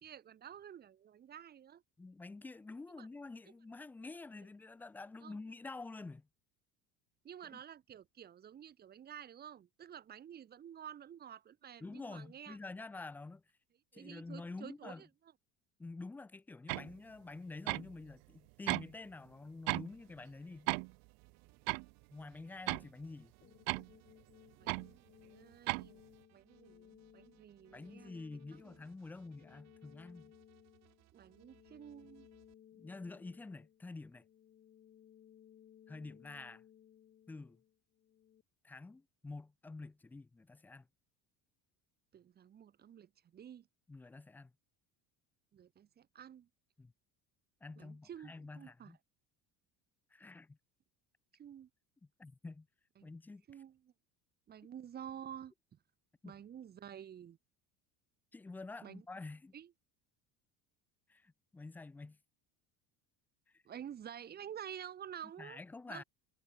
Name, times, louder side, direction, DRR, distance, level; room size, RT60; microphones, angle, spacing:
voice 1, 0.0-1.8 2.9-3.1 5.2-5.4 7.2-12.6 13.9-15.1 24.6-26.0 26.3-28.2 28.6-28.8 31.1-32.3 42.1-43.7 45.5-46.5 47.8-49.0 51.3-51.7 53.0-53.1 53.5-53.9 54.5-55.5 56.2-57.4 58.8-59.0 59.5-59.7 63.7-65.6 65.9-66.0, right 9 dB, 25° right, 2.1 m, -50 dB
voice 2, 2.0-6.3 7.4-7.6 11.8-13.4 13.9-15.0 15.8-20.7 22.1-23.3 27.7-30.3 32.7-34.2 35.9-36.6 37.3-37.6 38.6-40.9 43.9-44.5 46.8-46.9 47.6-49.0 50.1-50.6 52.2-52.7 53.0-53.4 56.2-56.4 58.3-59.5 61.1-62.2 63.5-63.6 65.4-66.0, left 3 dB, 5° left, 0.3 m, -48 dB
sound 1, 16.7-16.9 17.7-17.9 18.7-18.9 19.7-19.9 20.7-20.9 21.7-21.9 22.7-22.8 23.7-23.9 24.7-24.9 25.7-25.9, right 40 dB or more, 75° right, 0.6 m, -35 dB
sound 2, 19.9-32.5, right 17 dB, 45° right, 2.5 m, -70 dB
sound 3, 23.4-38.4, left 10 dB, 30° left, 2.2 m, -62 dB
cardioid pair, 175°, 36 cm